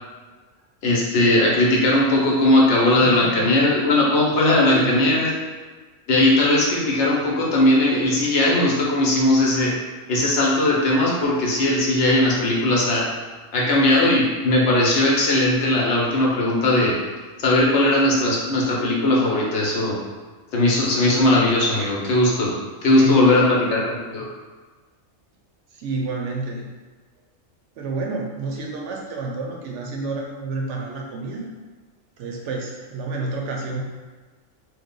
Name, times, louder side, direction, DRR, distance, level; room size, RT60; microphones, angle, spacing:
voice 1, 0.8-5.3 6.1-9.7 10.1-13.1 13.5-17.0 17.4-20.0 20.5-22.5 22.8-24.3, left 1 dB, 65° left, -3 dB, 0.9 m, -18 dB
voice 2, 3.0-3.7 4.6-5.2 23.0-23.7 25.7-26.7 27.8-31.5 32.2-33.8, right 3 dB, 70° right, -1 dB, 0.8 m, -29 dB
3.1 x 2.1 x 3.7 m, 1.4 s
omnidirectional pair, 1.4 m